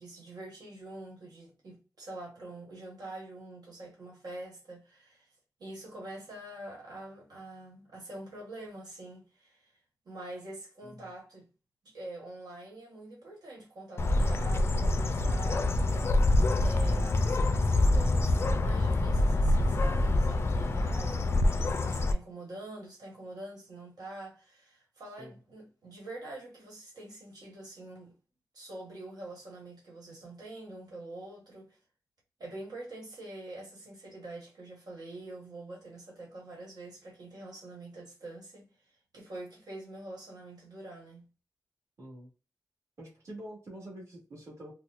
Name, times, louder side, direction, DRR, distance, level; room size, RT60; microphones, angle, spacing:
voice 1, 0.0-5.3 5.6-9.7 10.0-11.5 11.8-15.8 16.6-28.1 28.5-31.8 32.4-41.2, right 2 dB, 85° right, 1.4 m, -45 dB
Bird, 14.0-22.1, left 2 dB, 40° left, 0.3 m, -26 dB
voice 2, 42.0-42.3 43.0-44.7, right 1 dB, 45° right, 1.6 m, -46 dB
4.3 x 2.1 x 2.4 m
wide cardioid pair, 175°, 7 cm